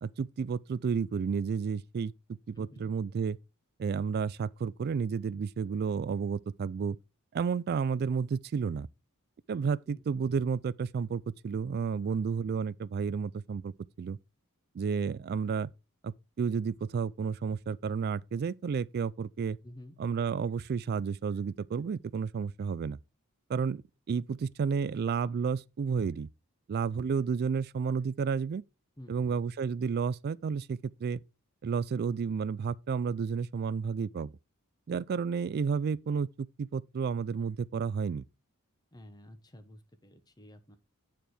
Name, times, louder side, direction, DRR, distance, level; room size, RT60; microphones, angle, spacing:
voice 1, 0.0-2.1 2.5-3.4 3.8-7.0 7.3-8.9 9.5-13.7 14.0-14.2 14.7-15.7 16.0-19.6 20.0-23.0 23.5-26.3 26.7-28.6 29.1-31.2 31.6-34.3 34.9-38.2, right 6 dB, 45° right, 0.3 m, -31 dB
voice 2, 2.5-2.9 9.9-10.2 12.1-12.2 19.6-20.0 29.0-29.4 38.9-40.8, left 1 dB, 20° left, 1.0 m, -51 dB
9.1 x 4.5 x 4.8 m
head